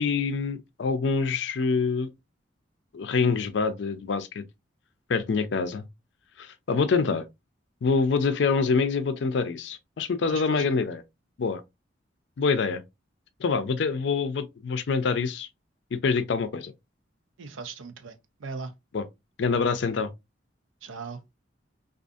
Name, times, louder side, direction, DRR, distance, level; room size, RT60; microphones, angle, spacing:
voice 1, 0.0-2.1 2.9-4.4 5.1-5.9 6.4-7.3 7.8-11.0 11.4-11.6 12.4-12.8 13.4-15.5 15.9-16.7 18.9-19.0 19.4-20.1, left 4 dB, 65° left, 0.4 m, -25 dB
voice 2, 10.3-10.8 17.4-18.7 20.8-21.2, right 4 dB, 85° right, 0.5 m, -39 dB
2.5 x 2.4 x 2.3 m
head